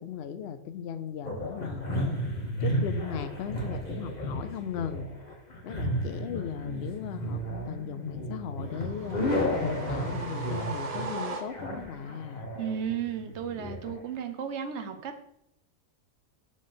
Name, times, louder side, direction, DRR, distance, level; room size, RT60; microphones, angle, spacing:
voice 1, 0.0-1.9 2.6-5.1 5.6-9.3 9.9-12.5, left 8 dB, 65° left, 10 dB, 0.7 m, -37 dB
sound 1, 1.2-13.9, equal, 35° left, 1.7 m, -33 dB
sound 2, 8.7-11.9, right 4 dB, 40° right, 0.6 m, -39 dB
voice 2, 12.5-15.3, right 8 dB, 60° right, 8 dB, 1.0 m, -34 dB
6.3 x 5.3 x 3.9 m, 0.75 s
omnidirectional pair, 1.4 m